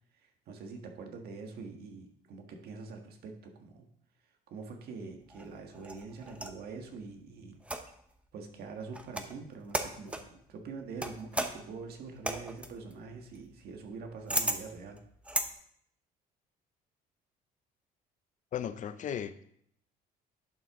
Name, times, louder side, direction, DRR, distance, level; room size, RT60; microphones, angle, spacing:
voice 1, 0.2-3.9 4.5-7.6 8.3-15.0, right 4 dB, 70° right, 3 dB, 1.6 m, -45 dB
Candle Lantern, 5.3-6.6 7.6-8.1 8.9-9.4 9.7-10.3 11.0-15.5, right 1 dB, 5° right, 0.8 m, -36 dB
voice 2, 18.5-19.4, left 9 dB, 50° left, 13 dB, 0.6 m, -36 dB
11.0 x 6.0 x 3.7 m, 0.69 s
cardioid pair, 110°, 17 cm